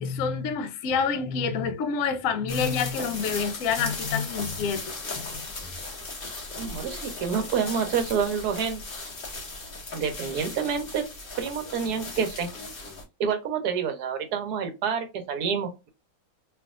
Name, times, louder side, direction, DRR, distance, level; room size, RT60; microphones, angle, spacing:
voice 1, 0.0-5.4, left 6 dB, 85° left, 0.7 m, -28 dB
sound 1, 2.5-13.0, left 3 dB, 35° left, 0.9 m, -37 dB
voice 2, 6.6-8.8 9.9-11.0 11.4-12.5 13.2-15.9, right 6 dB, 65° right, 1.0 m, -28 dB
3.3 x 2.6 x 2.3 m
omnidirectional pair, 2.2 m